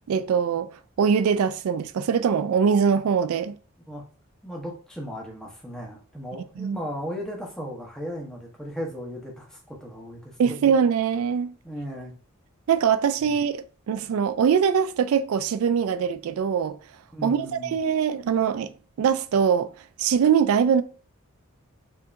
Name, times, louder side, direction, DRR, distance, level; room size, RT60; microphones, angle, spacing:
voice 1, 0.1-3.5 6.6-6.8 10.4-11.5 12.7-16.8 17.2-19.7 20.0-20.8, right 7 dB, 80° right, 0.3 m, -22 dB
voice 2, 4.4-10.7 11.6-12.1 13.2-13.3 17.1-17.8, equal, 5° left, 0.9 m, -36 dB
5.6 x 2.8 x 2.5 m
head